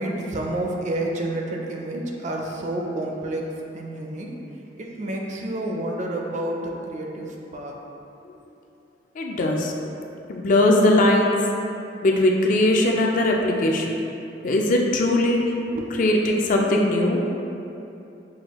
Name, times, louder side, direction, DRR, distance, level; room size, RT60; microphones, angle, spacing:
voice 1, 0.0-4.3 4.8-7.8 15.7-15.9, right 1 dB, 40° right, 0 dB, 0.4 m, -29 dB
voice 2, 9.1-9.7 10.3-11.4 12.0-14.0 14.4-15.4 16.0-17.3, left 1 dB, 45° left, 0 dB, 0.4 m, -20 dB
6.1 x 2.3 x 3.0 m, 2.7 s
head